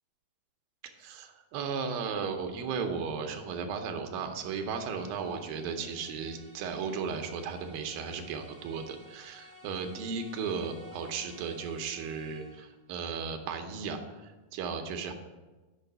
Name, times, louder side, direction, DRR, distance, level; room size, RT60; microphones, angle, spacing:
voice 1, 1.0-15.1, right 5 dB, 80° right, 5 dB, 2.6 m, -35 dB
sound 1, 4.3-12.8, left 1 dB, 15° left, 2.6 m, -55 dB
6.8 x 5.5 x 6.7 m, 1.2 s
omnidirectional pair, 4.1 m